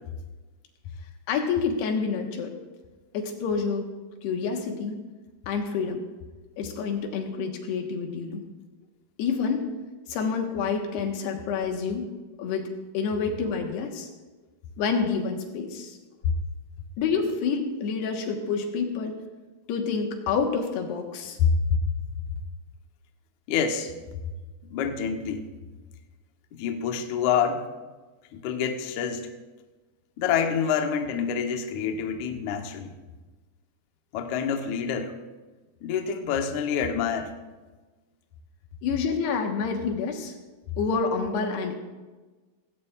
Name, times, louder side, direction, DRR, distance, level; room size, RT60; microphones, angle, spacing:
voice 1, 1.3-2.5 3.1-3.9 4.2-5.0 5.5-6.0 6.6-8.4 9.2-9.6 10.1-12.0 12.4-12.6 12.9-14.1 14.8-16.0 17.0-19.1 19.7-21.4 38.8-40.3 40.8-41.8, left 5 dB, 90° left, 3 dB, 3.5 m, -28 dB
voice 2, 21.4-21.8 23.5-23.9 24.7-25.5 26.6-27.7 28.3-29.3 30.2-33.0 34.1-35.2 35.8-37.4, left 7 dB, 70° left, 5 dB, 1.9 m, -27 dB
18.0 x 16.5 x 2.4 m, 1.3 s
omnidirectional pair, 4.6 m